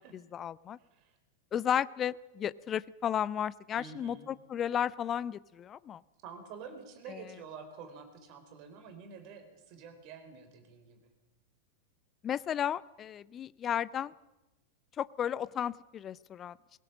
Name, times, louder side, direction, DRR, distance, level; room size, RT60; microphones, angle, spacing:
voice 1, 0.1-0.8 1.5-6.0 7.1-7.2 12.2-14.1 15.0-16.6, left 9 dB, 25° left, 20 dB, 0.6 m, -33 dB
voice 2, 0.8-1.1 3.8-4.3 6.2-11.0, right 5 dB, 45° right, 7 dB, 4.6 m, -48 dB
22.0 x 19.0 x 7.5 m, 1.0 s
figure-of-eight pair, 90°, 0 cm